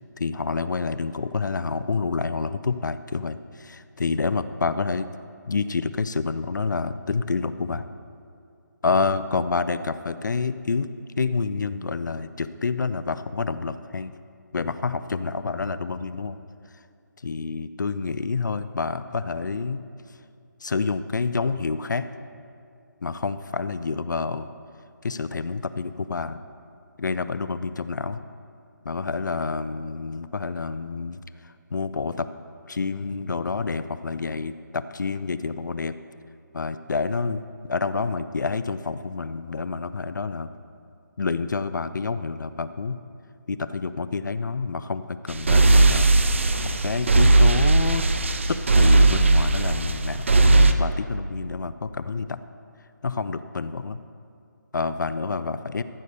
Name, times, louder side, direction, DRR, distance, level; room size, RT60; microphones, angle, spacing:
voice 1, 0.2-5.1 5.5-7.9 8.8-10.9 11.2-14.1 14.5-16.4 17.2-19.8 20.6-22.1 23.0-24.5 25.0-26.4 27.0-28.2 28.9-31.2 31.7-32.3 32.7-35.9 36.5-37.4 37.7-40.5 41.2-43.0 43.5-46.1 46.8-48.0 48.5-52.4 53.0-54.0 54.7-55.8, left 4 dB, 65° left, 13 dB, 0.5 m, -28 dB
sound 1, 45.3-50.7, right 2 dB, 40° right, 0.5 m, -18 dB
14.0 x 6.8 x 5.0 m, 2.5 s
figure-of-eight pair, 175°, 11 cm